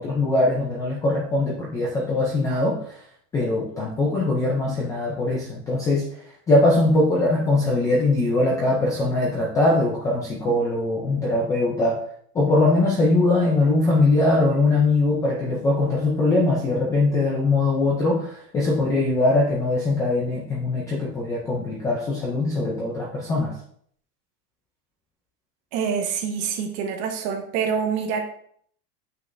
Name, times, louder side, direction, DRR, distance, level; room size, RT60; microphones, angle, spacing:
voice 1, 0.0-3.0 3.3-6.0 6.5-12.0 12.3-23.5, left 2 dB, 10° left, -4 dB, 0.3 m, -21 dB
voice 2, 25.7-28.2, right 6 dB, 40° right, 3 dB, 1.3 m, -26 dB
8.0 x 6.1 x 2.6 m, 0.62 s
supercardioid pair, 165°, 44 cm